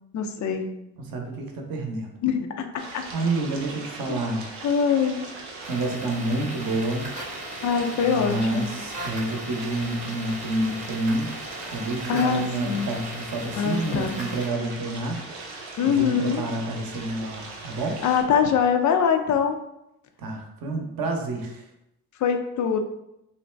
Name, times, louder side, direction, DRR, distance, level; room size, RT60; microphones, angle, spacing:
voice 1, 0.1-0.7 2.2-3.1 4.1-4.2 4.6-5.2 7.6-8.7 12.1-12.9 13.6-14.2 15.8-16.4 18.0-19.6 22.2-22.8, left 7 dB, 40° left, 6 dB, 0.5 m, -23 dB
voice 2, 1.0-2.1 3.1-4.5 5.7-7.1 8.0-11.3 11.7-15.3 15.8-18.0 20.2-21.6, right 2 dB, 45° right, 2 dB, 0.8 m, -28 dB
sound 1, 2.8-18.2, right 3 dB, 85° right, 0.7 m, -40 dB
sound 2, 5.6-14.5, right 1 dB, 15° right, 0.8 m, -38 dB
2.7 x 2.2 x 3.2 m, 0.85 s
hypercardioid pair, 60°, 47 cm